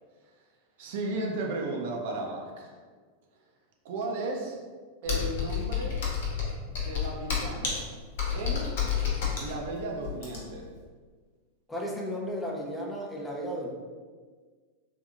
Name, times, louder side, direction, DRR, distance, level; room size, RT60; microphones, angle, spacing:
voice 1, 0.8-2.7 3.8-4.6 5.0-6.0 6.7-7.8 8.3-8.7 9.3-10.7, right 2 dB, 50° right, 1 dB, 0.5 m, -34 dB
Computer keyboard, 5.1-10.7, left 7 dB, 55° left, 0.7 m, -30 dB
voice 2, 11.7-13.7, equal, 10° left, -1 dB, 0.5 m, -34 dB
3.5 x 2.7 x 2.5 m, 1.5 s
figure-of-eight pair, 90°, 0 cm